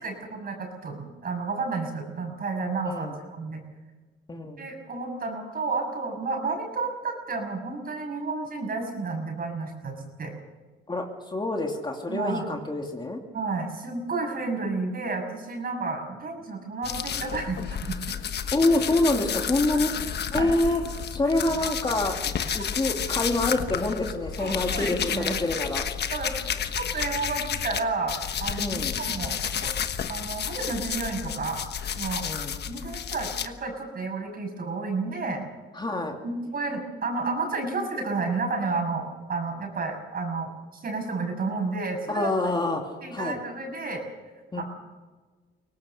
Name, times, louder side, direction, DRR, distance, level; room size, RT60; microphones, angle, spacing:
voice 1, 0.0-3.6 4.6-10.3 12.1-12.5 13.3-17.9 19.7-19.9 20.3-20.5 22.5-22.6 24.4-25.4 26.1-26.3 26.7-29.7 30.1-31.6 32.0-32.3 32.7-35.4 36.2-42.5 43.0-44.0 44.5-44.6, right 3 dB, 50° right, 3 dB, 6.8 m, -31 dB
voice 2, 4.3-4.6 10.9-13.2 18.5-20.8 21.1-22.2 22.5-25.9 28.6-29.0 32.2-32.6 35.7-36.2 42.1-42.8 43.1-43.4 44.5-44.6, left 2 dB, 20° left, 2 dB, 2.6 m, -26 dB
sound 1, 16.8-27.8 28.1-33.5, left 8 dB, 55° left, 1.3 m, -31 dB
23.5 x 18.5 x 6.6 m, 1.3 s
cardioid pair, 90°, 20 cm